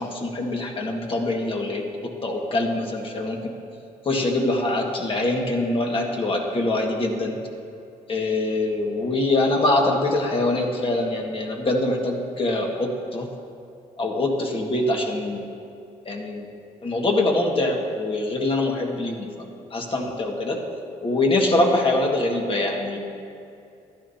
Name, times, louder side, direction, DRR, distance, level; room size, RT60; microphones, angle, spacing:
voice 1, 0.0-3.4 4.1-7.4 8.1-13.3 14.0-15.4 16.1-16.5 16.8-19.3 19.7-20.6 21.0-23.0, left 2 dB, 35° left, 0 dB, 1.7 m, -24 dB
12.5 x 10.5 x 2.8 m, 2.5 s
supercardioid pair, 80°, 15 cm